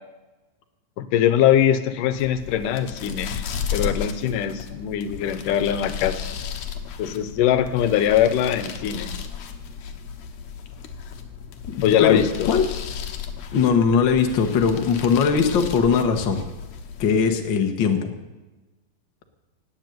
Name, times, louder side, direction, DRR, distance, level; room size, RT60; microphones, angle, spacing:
voice 1, 1.0-3.4 3.7-6.2 7.0-9.1 11.8-12.5, left 10 dB, 85° left, 11 dB, 2.5 m, -21 dB
sound 1, 2.0-17.5, left 7 dB, 65° left, 2.3 m, -34 dB
voice 2, 11.7-12.6 13.5-16.4 17.0-18.1, left 6 dB, 50° left, 4 dB, 1.6 m, -20 dB
17.5 x 8.2 x 9.3 m, 1.2 s
omnidirectional pair, 3.7 m